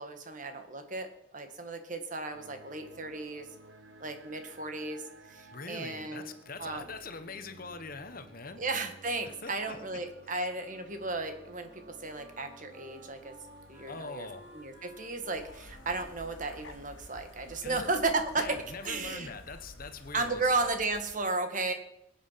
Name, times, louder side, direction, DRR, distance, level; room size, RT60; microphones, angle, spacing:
voice 1, 0.0-3.5 4.0-5.0 5.3-6.3 6.6-6.9 8.6-13.4 13.7-14.3 14.5-18.6 18.8-19.3 20.1-21.7, right 3 dB, 40° right, 7 dB, 1.7 m, -34 dB
sound 1, 2.3-16.1, right 2 dB, 75° right, 1.8 m, -55 dB
voice 2, 5.5-8.6 9.2-9.8 10.2-10.3 13.9-14.5 17.6-17.9 18.4-20.5, left 4 dB, 45° left, 9 dB, 1.2 m, -43 dB
Wind instrument woodwind instrument, 11.1-18.4, equal, 15° right, 4.2 m, -58 dB
sound 2, 15.3-21.1, left 1 dB, 85° left, 2.0 m, -51 dB
22.0 x 8.9 x 5.8 m, 0.81 s
head